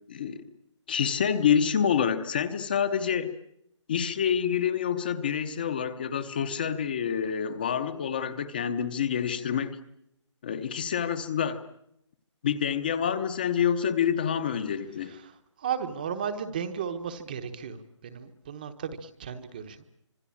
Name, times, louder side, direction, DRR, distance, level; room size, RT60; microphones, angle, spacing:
voice 1, 0.9-3.3 3.9-9.8 10.4-11.6 12.4-15.1, left 8 dB, 20° left, 11 dB, 0.9 m, -27 dB
voice 2, 15.0-15.3 15.6-19.9, right 7 dB, 20° right, 9 dB, 1.0 m, -35 dB
26.0 x 22.0 x 8.6 m, 0.75 s
hypercardioid pair, 175°, 16 cm